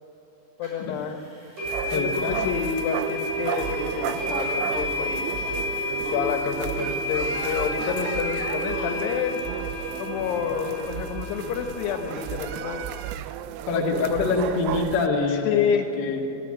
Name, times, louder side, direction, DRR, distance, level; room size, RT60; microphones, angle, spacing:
voice 1, 0.6-1.2 1.9-5.3 6.0-9.4 10.0-12.9 13.8-14.4 15.3-15.9, left 7 dB, 75° left, 6 dB, 3.2 m, -28 dB
sound 1, 0.6-0.7 1.6-13.2, left 1 dB, 45° right, 7.7 m, -31 dB
sound 2, 1.6-15.1, right 11 dB, 85° right, 2.8 m, -34 dB
voice 2, 1.9-2.5 13.7-16.3, left 4 dB, 35° left, -1 dB, 1.9 m, -25 dB
22.0 x 13.5 x 8.9 m, 3.0 s
omnidirectional pair, 5.0 m